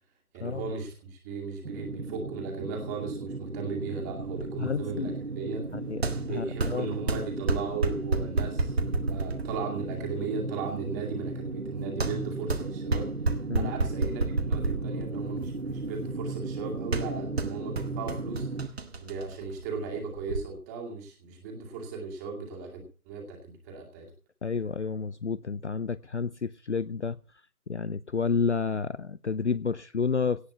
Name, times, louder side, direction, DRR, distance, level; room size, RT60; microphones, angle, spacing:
voice 1, 0.3-5.6 6.2-13.1 13.5-14.2 14.5-18.5 19.0-24.1, right 4 dB, 10° right, 2 dB, 2.3 m, -36 dB
sound 1, 1.6-18.7, right 3 dB, 65° right, 1.5 m, -36 dB
sound 2, 4.2-20.4, right 3 dB, 45° right, 1.6 m, -32 dB
voice 2, 4.6-5.1 5.7-6.0 6.3-6.9 13.5-13.7 24.4-27.2 27.7-30.4, left 5 dB, 50° left, 18 dB, 0.6 m, -30 dB
17.5 x 5.9 x 8.1 m, 0.37 s
figure-of-eight pair, 150°, 43 cm